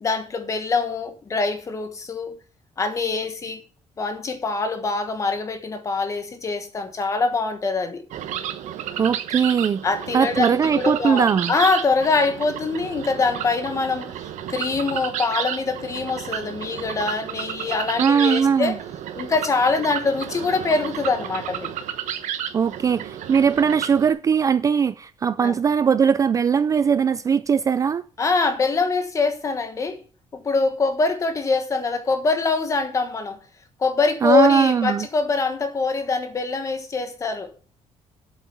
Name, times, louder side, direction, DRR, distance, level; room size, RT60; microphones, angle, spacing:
voice 1, 0.0-2.3 2.8-3.6 4.0-8.0 9.8-18.8 19.1-21.7 25.4-25.5 28.2-30.0 30.3-33.4 33.8-37.5, left 4 dB, 25° left, 1.3 m, -24 dB
sound 1, 8.1-24.1, right 10 dB, 85° right, 1.1 m, -32 dB
voice 2, 9.0-9.8 10.1-11.5 18.0-18.7 22.5-28.0 34.2-35.1, right 6 dB, 25° right, 0.4 m, -20 dB
8.5 x 8.0 x 5.5 m
cardioid pair, 175°, 12 cm